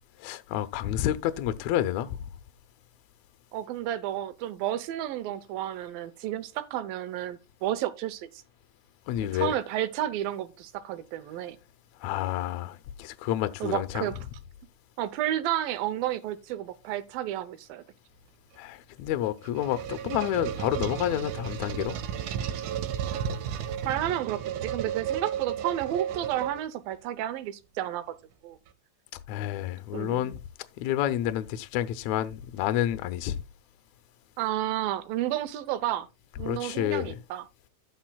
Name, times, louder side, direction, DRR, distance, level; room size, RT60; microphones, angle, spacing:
voice 1, 0.2-2.2 9.1-9.5 12.0-14.1 18.6-22.0 29.3-30.4 30.8-33.3 36.4-37.2, left 12 dB, 80° left, 1.7 m, -29 dB
voice 2, 3.5-8.3 9.2-11.6 13.6-14.2 15.0-17.8 23.9-28.0 28.4-28.6 29.9-30.3 34.4-36.1 36.4-37.5, right 12 dB, 90° right, 2.6 m, -31 dB
sound 1, 19.2-26.9, right 9 dB, 70° right, 2.1 m, -33 dB
12.5 x 8.7 x 2.3 m
omnidirectional pair, 4.0 m